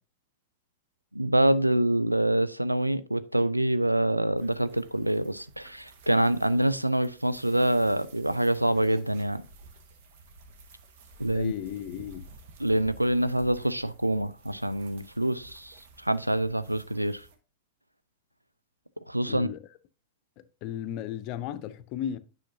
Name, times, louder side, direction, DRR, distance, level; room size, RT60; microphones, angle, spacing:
voice 1, 1.1-9.5 11.2-11.5 12.6-17.2 19.1-19.5, right 1 dB, 85° right, 0.4 m, -26 dB
sound 1, 4.4-17.3, right 3 dB, 55° right, 1.2 m, -53 dB
voice 2, 11.3-12.3 19.2-19.6 20.4-22.2, left 10 dB, 40° left, 0.6 m, -35 dB
10.0 x 5.7 x 2.7 m
figure-of-eight pair, 90°, 0 cm